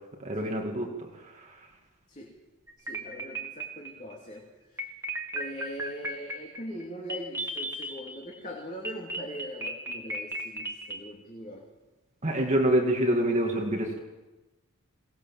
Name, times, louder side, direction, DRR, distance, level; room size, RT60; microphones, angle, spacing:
voice 1, 0.2-0.9 12.2-14.0, right 1 dB, 30° right, 0 dB, 2.4 m, -25 dB
sound 1, 2.7-4.1 4.8-8.4 8.8-11.0, right 1 dB, 10° right, 2.0 m, -35 dB
voice 2, 2.8-4.9 5.3-11.7, equal, 35° left, -1 dB, 2.9 m, -41 dB
22.0 x 19.0 x 7.5 m, 1.1 s
head